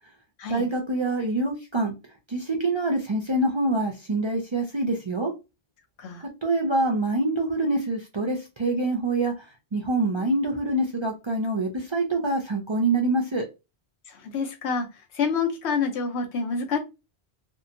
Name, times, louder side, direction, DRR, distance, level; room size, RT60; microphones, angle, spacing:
voice 1, 0.5-1.9 2.3-5.3 6.2-9.3 9.7-13.5, right 2 dB, 50° right, 1 dB, 0.3 m, -25 dB
voice 2, 14.1-14.9 15.1-16.8, left 5 dB, 85° left, 5 dB, 0.9 m, -27 dB
2.7 x 2.2 x 2.5 m, 0.26 s
omnidirectional pair, 1.1 m